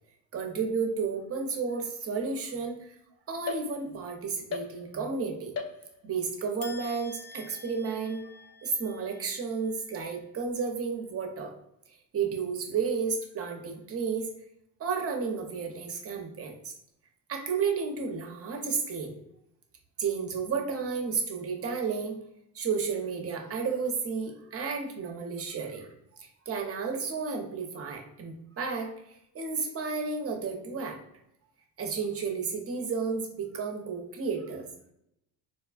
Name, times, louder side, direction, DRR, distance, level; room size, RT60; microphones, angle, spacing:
voice 1, 0.3-3.0 3.3-5.5 6.0-8.2 8.6-11.5 12.1-14.3 14.8-16.7 17.3-19.1 20.0-22.2 22.5-25.9 26.2-28.9 29.3-31.0 31.8-34.6, right 5 dB, 30° right, 3 dB, 0.7 m, -32 dB
sound 1, 3.5-4.1 4.5-5.2 5.6-6.2 6.6-10.1, left 5 dB, 35° left, 0.5 m, -42 dB
4.2 x 2.2 x 2.4 m, 0.80 s
supercardioid pair, 85°, 45 cm